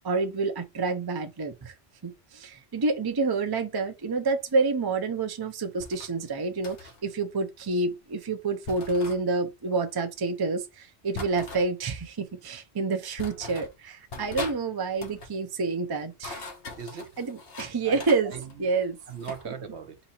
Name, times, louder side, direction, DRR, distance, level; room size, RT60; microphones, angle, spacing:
voice 1, 0.0-1.7 2.0-16.4 17.2-18.3 18.6-19.0 19.4-19.5, right 3 dB, 25° right, 0.5 m, -28 dB
sound 1, 5.8-6.1 6.6-7.0 8.7-9.2 11.1-11.7 12.6-12.7 13.2-13.7 14.1-14.6 14.9-15.3 16.0-17.7 18.0-19.4, left 3 dB, 60° left, 1.2 m, -40 dB
voice 2, 16.8-17.1 17.8-18.7 19.1-20.0, right 6 dB, 70° right, 1.2 m, -39 dB
4.0 x 2.8 x 4.3 m
omnidirectional pair, 1.2 m